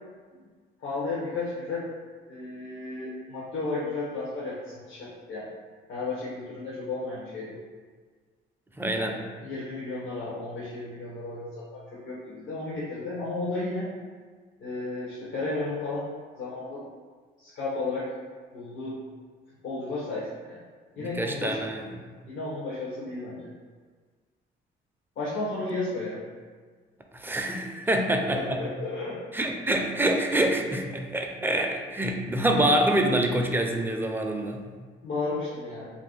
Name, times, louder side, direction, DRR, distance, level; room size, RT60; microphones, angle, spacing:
voice 1, 0.8-1.8 2.3-5.5 5.9-7.6 9.0-9.2 9.4-13.9 14.6-16.1 16.3-16.8 17.4-18.1 18.5-19.0 19.6-20.6 21.0-21.7 22.3-23.5 25.2-26.2 28.1-29.2 35.0-35.9, left 3 dB, 70° left, -8 dB, 0.9 m, -33 dB
voice 2, 8.8-9.2 21.0-21.9 27.1-28.6 29.3-34.6, right 1 dB, 10° right, 2 dB, 0.4 m, -26 dB
2.7 x 2.6 x 3.8 m, 1.5 s
cardioid pair, 90°, 20 cm